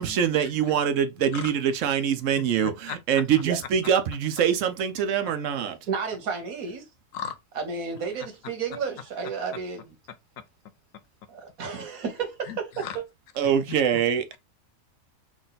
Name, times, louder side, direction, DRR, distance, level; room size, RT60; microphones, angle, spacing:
voice 1, 0.0-5.7 13.4-14.3, right 8 dB, 70° right, 1.0 m, -24 dB
voice 2, 2.6-3.0 7.1-7.4 12.5-13.0, left 8 dB, 75° left, 1.0 m, -36 dB
voice 3, 3.2-3.6 5.6-6.8 7.5-9.9 11.3-13.0, right 5 dB, 85° right, 1.5 m, -32 dB
3.7 x 2.4 x 3.9 m
omnidirectional pair, 1.4 m